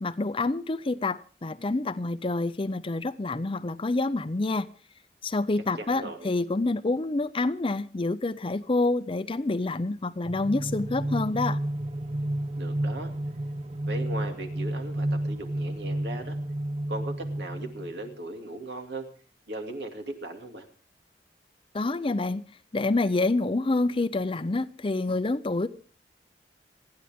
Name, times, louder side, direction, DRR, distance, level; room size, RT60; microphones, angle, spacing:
voice 1, 0.0-4.7 5.2-11.6 21.7-22.4 22.7-25.7, left 2 dB, 30° left, 0.6 m, -27 dB
voice 2, 5.8-6.3 12.6-13.1 13.9-16.4 16.9-19.1 19.5-20.7, right 1 dB, 75° right, 2.5 m, -38 dB
sound 1, 10.2-18.1, right 1 dB, 35° right, 0.7 m, -31 dB
27.5 x 9.9 x 3.6 m
head